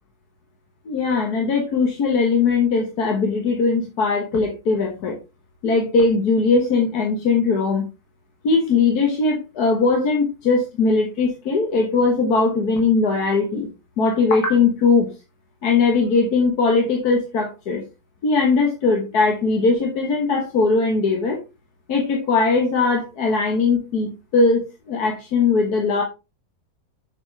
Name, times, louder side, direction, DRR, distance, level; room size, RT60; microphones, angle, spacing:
voice 1, 0.9-5.2 5.6-7.9 8.4-13.7 14.0-15.1 15.6-17.8 18.2-21.4 21.9-26.0, left 4 dB, 85° left, 2 dB, 1.8 m, -20 dB
7.2 x 5.9 x 3.3 m, 0.28 s
omnidirectional pair, 1.6 m